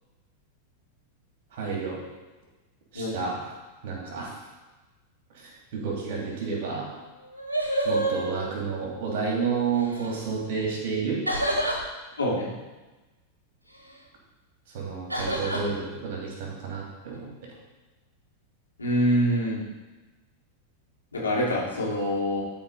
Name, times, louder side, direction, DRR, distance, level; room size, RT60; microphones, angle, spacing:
voice 1, 1.5-2.0 2.9-3.4 3.8-4.3 5.3-6.9 7.8-11.2 14.7-17.3, right 5 dB, 50° right, -2 dB, 2.8 m, -30 dB
voice 2, 2.9-3.3 12.2-12.5 18.8-19.6 21.1-22.4, equal, 75° left, -6 dB, 2.8 m, -25 dB
sound 1, 6.8-6.9 7.2-9.0 9.7-10.1 11.3-11.8 15.1-15.6, right 1 dB, 85° right, 1.4 m, -28 dB
12.0 x 4.6 x 4.1 m, 1.2 s
figure-of-eight pair, 90°, 0 cm